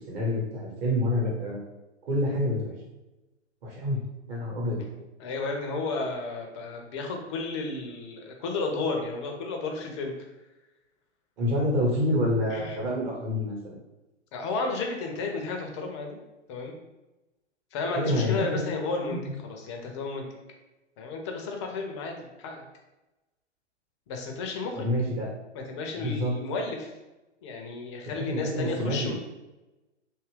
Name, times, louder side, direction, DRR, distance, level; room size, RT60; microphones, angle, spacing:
voice 1, 0.1-1.6 2.1-2.7 3.6-4.0 4.3-4.8 11.4-13.8 17.9-18.7 19.1-19.3 24.7-25.3 26.0-26.4 28.1-29.1, left 1 dB, 40° right, -3 dB, 1.0 m, -27 dB
voice 2, 5.2-10.1 12.5-12.8 14.3-16.2 16.5-16.8 17.7-19.2 19.4-20.2 21.0-22.6 24.1-24.9 25.5-26.9 27.4-29.1, left 3 dB, 25° left, 2 dB, 0.4 m, -32 dB
2.7 x 2.4 x 3.1 m, 1.0 s
figure-of-eight pair, 110°, 36 cm